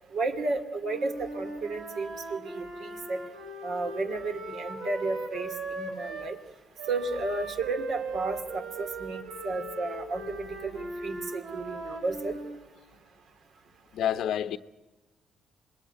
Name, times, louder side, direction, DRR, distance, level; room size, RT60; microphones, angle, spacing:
voice 1, 0.1-3.3 3.6-6.4 6.9-12.4, right 3 dB, 65° right, 2.7 m, -33 dB
Wind instrument woodwind instrument, 0.8-6.3 6.8-12.6, right 2 dB, 80° right, 5.0 m, -39 dB
voice 2, 13.9-14.6, left 10 dB, 75° left, 0.9 m, -28 dB
26.5 x 21.0 x 9.3 m
cardioid pair, 90°, 0 cm